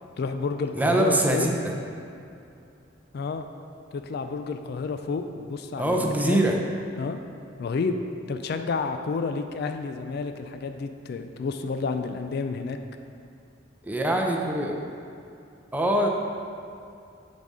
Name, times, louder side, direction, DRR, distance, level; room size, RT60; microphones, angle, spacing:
voice 1, 0.2-1.5 3.1-3.4 3.9-6.5 7.0-7.2 7.6-8.0 8.3-12.8, left 4 dB, 55° left, 7 dB, 0.3 m, -30 dB
voice 2, 0.7-1.7 5.8-6.6 13.8-14.8 15.7-16.1, right 1 dB, 10° right, 0 dB, 0.5 m, -23 dB
7.0 x 4.1 x 4.8 m, 2.6 s
head